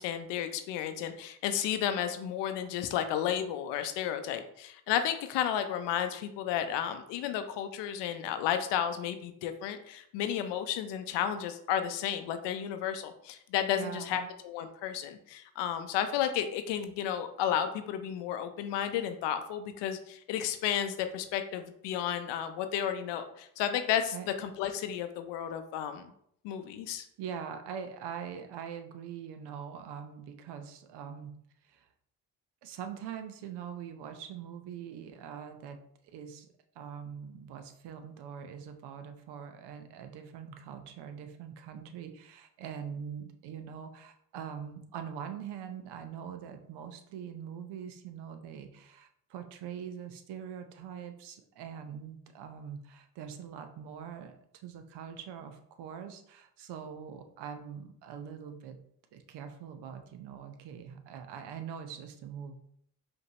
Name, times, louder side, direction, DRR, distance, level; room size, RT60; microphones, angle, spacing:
voice 1, 0.0-26.1 26.4-27.0, left 9 dB, 70° left, 9 dB, 0.6 m, -32 dB
voice 2, 13.7-14.3 24.1-24.3 27.2-31.3 31.6-31.9 32.6-35.8 36.0-36.5 36.7-58.8 59.1-62.5, right 8 dB, 65° right, 7 dB, 0.7 m, -43 dB
5.1 x 2.8 x 2.9 m, 0.69 s
hypercardioid pair, 50°, 45 cm